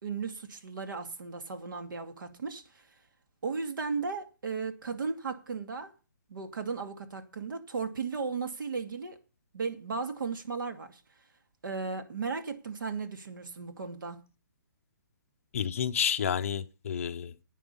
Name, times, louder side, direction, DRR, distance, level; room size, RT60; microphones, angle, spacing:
voice 1, 0.0-2.8 3.4-5.9 6.3-9.2 9.5-11.0 11.6-14.2, right 4 dB, 70° right, 2.3 m, -35 dB
voice 2, 15.5-17.4, left 8 dB, 40° left, 0.8 m, -30 dB
11.0 x 9.1 x 5.5 m
hypercardioid pair, 175°, 11 cm